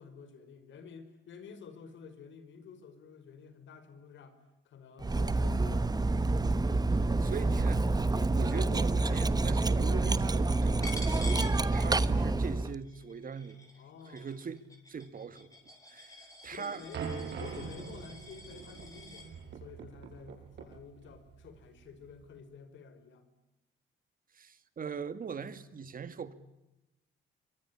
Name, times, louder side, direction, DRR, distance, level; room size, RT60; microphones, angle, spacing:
voice 1, 0.0-4.4 4.7-6.0 12.2-12.4 13.8-14.4 16.3-17.0 17.4-23.3, left 6 dB, 70° left, 5.4 m, -50 dB
Cutlery silverware, 5.0-12.7, right 2 dB, 20° right, 1.1 m, -28 dB
voice 2, 7.2-7.9 8.3-13.6 14.1-15.6 15.9-16.8 17.5-17.6 24.3-26.3, right 6 dB, 45° right, 2.3 m, -41 dB
Coin (dropping), 10.8-12.3 12.7-19.3, left 2 dB, 15° left, 7.6 m, -47 dB
sound 1, 16.9-22.3, right 6 dB, 60° right, 7.5 m, -43 dB
25.0 x 23.5 x 9.9 m
cardioid pair, 90°, 20 cm